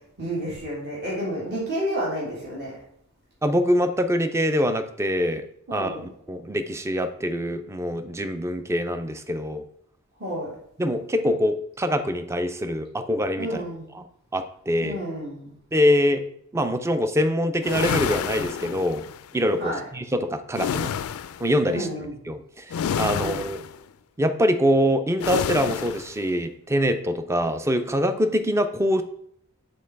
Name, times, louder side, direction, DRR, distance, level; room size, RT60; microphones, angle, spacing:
voice 1, 0.2-2.8 5.7-6.1 10.2-10.5 13.4-13.9 14.8-15.5 19.6-19.8 21.7-22.1 23.1-23.4, equal, 50° right, -5 dB, 1.9 m, -30 dB
voice 2, 3.4-5.4 5.7-6.0 6.3-9.7 10.8-13.6 13.9-14.0 14.3-15.0 15.7-16.2 16.5-19.1 19.3-20.9 21.4-21.9 22.3-23.6 24.2-29.0, equal, 15° right, 9 dB, 0.4 m, -24 dB
sound 1, 17.6-19.2 20.5-21.5 22.7-23.8 25.2-26.1, left 8 dB, 80° left, 0.3 m, -28 dB
5.3 x 3.9 x 5.6 m, 0.69 s
head